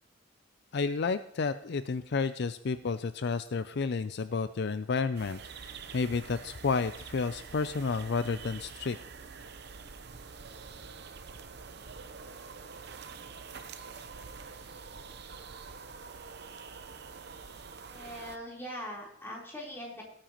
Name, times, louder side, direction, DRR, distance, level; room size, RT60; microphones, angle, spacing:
voice 1, 0.7-5.4 5.7-9.0, left 4 dB, 55° left, 12 dB, 0.5 m, -31 dB
sound 1, 5.1-18.4, right 5 dB, 55° right, 0.8 m, -46 dB
voice 2, 17.9-20.0, equal, 10° left, -4 dB, 3.9 m, -41 dB
17.5 x 8.9 x 3.0 m, 0.74 s
head